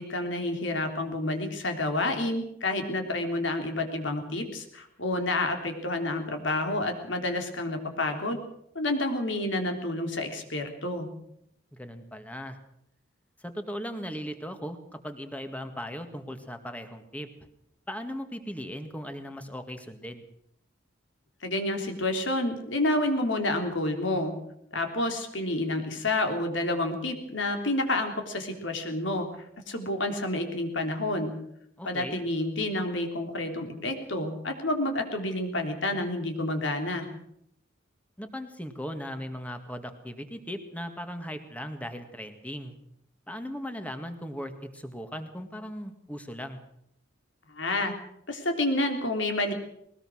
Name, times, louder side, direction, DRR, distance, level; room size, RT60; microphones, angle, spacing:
voice 1, 0.0-8.4 8.8-11.1 21.4-24.3 24.7-29.3 29.7-31.3 31.8-37.1 47.5-48.0 48.3-49.5, left 2 dB, 70° left, 5 dB, 3.5 m, -29 dB
voice 2, 11.7-12.6 13.4-17.3 17.9-20.3 31.8-32.2 38.2-42.7 43.3-46.6, equal, 5° left, 7 dB, 1.9 m, -38 dB
20.5 x 19.5 x 6.4 m, 0.73 s
head